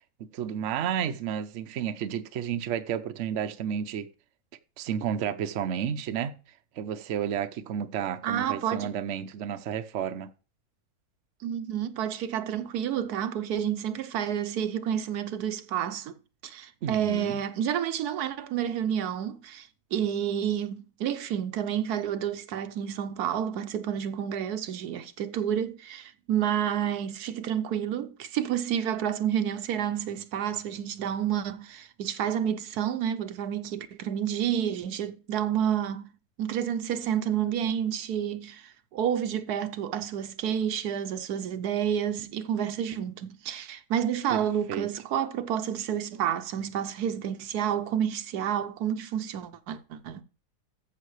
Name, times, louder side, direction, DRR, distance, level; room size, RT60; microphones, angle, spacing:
voice 1, 0.2-4.1 4.8-6.3 6.8-10.3 16.8-17.4 44.3-44.4 44.7-44.9, right 9 dB, 55° right, 0.9 m, -31 dB
voice 2, 8.2-8.9 11.4-16.2 16.4-36.1 36.4-50.2, right 9 dB, 75° right, 1.2 m, -30 dB
14.0 x 6.0 x 3.2 m
omnidirectional pair, 1.7 m